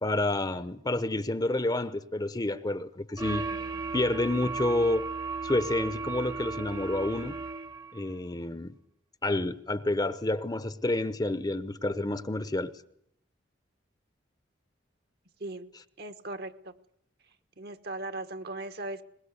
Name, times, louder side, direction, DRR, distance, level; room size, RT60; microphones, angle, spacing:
voice 1, 0.0-3.5 3.9-5.1 5.4-7.3 7.9-8.7 9.2-12.7, left 2 dB, 20° left, 0.9 m, -29 dB
sound 1, 3.2-8.0, right 4 dB, 20° right, 1.0 m, -35 dB
voice 2, 16.0-16.7 17.6-19.0, right 2 dB, 55° right, 1.4 m, -38 dB
22.0 x 20.5 x 8.1 m
head